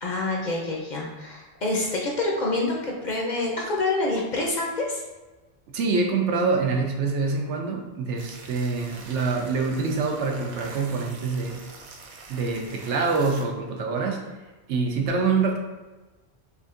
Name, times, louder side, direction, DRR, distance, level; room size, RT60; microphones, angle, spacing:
voice 1, 0.0-5.0, left 2 dB, 50° left, -2 dB, 0.6 m, -27 dB
voice 2, 5.7-11.6 12.3-14.3 14.7-15.6, right 4 dB, 85° right, 3 dB, 0.9 m, -25 dB
sound 1, 8.2-13.4, right 3 dB, 55° right, 0.5 m, -45 dB
4.9 x 2.6 x 2.5 m, 1.2 s
omnidirectional pair, 1.2 m